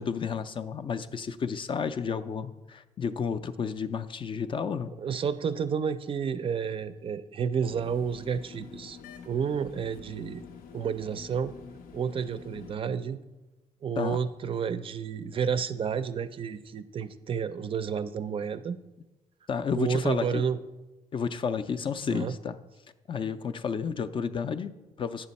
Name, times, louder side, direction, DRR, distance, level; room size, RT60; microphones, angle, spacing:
voice 1, 0.0-4.9 14.0-14.2 19.5-20.4 21.1-22.6 23.1-25.3, left 6 dB, 35° left, 11 dB, 0.4 m, -31 dB
voice 2, 5.0-9.0 9.2-10.4 10.7-11.5 11.9-13.2 13.8-18.8 19.7-20.6 22.1-22.3, right 7 dB, 40° right, 12 dB, 0.4 m, -30 dB
sound 1, 7.6-12.8, left 6 dB, 90° left, 0.6 m, -47 dB
8.9 x 6.7 x 4.1 m, 1.1 s
cardioid pair, 130°, 14 cm